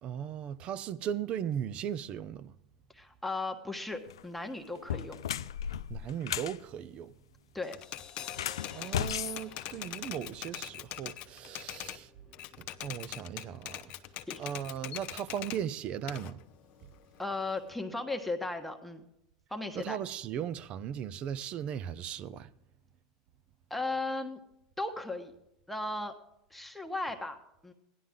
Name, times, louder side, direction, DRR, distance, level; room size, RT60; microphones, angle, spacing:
voice 1, 0.0-2.5 5.9-7.1 8.7-12.1 12.6-13.9 14.4-16.4 19.7-22.5, right 9 dB, 45° right, 0.7 m, -37 dB
voice 2, 2.9-5.2 7.5-7.8 14.3-14.4 17.2-19.0 19.5-20.0 23.7-24.4 24.8-25.3 25.7-26.1 26.5-27.4 27.6-27.7, left 2 dB, 5° left, 1.3 m, -36 dB
sound 1, 4.0-4.2 4.8-6.6 8.2-10.3, left 10 dB, 90° left, 0.4 m, -35 dB
Crash cymbal, 7.6-13.8 14.1-14.2, left 8 dB, 30° left, 1.4 m, -53 dB
Typewriter, 7.7-12.0 12.3-15.6 16.1-17.7, left 14 dB, 55° left, 0.8 m, -42 dB
16.5 x 11.0 x 3.7 m
hypercardioid pair, 105°, 3 cm